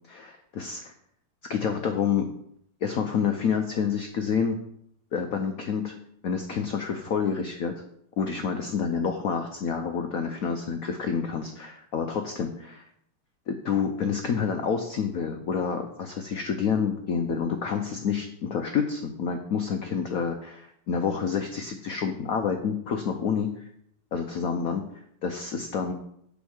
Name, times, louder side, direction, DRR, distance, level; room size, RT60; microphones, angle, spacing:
voice 1, 0.1-0.9 1.5-2.2 2.8-4.6 5.1-5.9 6.2-7.7 8.2-12.9 13.5-23.7 24.1-24.8 25.2-25.9, left 6 dB, 85° left, 5 dB, 0.7 m, -28 dB
6.9 x 5.3 x 6.3 m, 0.72 s
omnidirectional pair, 2.4 m